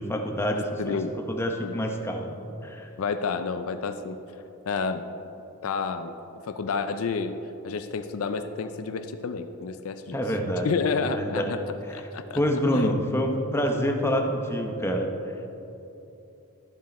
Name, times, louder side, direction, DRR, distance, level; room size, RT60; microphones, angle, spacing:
voice 1, 0.0-1.0 1.3-2.4 2.6-2.9 10.1-10.7 11.0-11.5 12.3-15.1, equal, 10° left, 2 dB, 0.8 m, -26 dB
voice 2, 0.8-1.2 1.6-1.8 3.0-4.2 4.7-5.1 5.6-6.1 6.4-7.4 7.6-10.2 10.6-11.6 11.9-12.4 12.7-12.9, left 5 dB, 65° left, 9 dB, 0.4 m, -30 dB
12.5 x 7.5 x 4.2 m, 3.0 s
head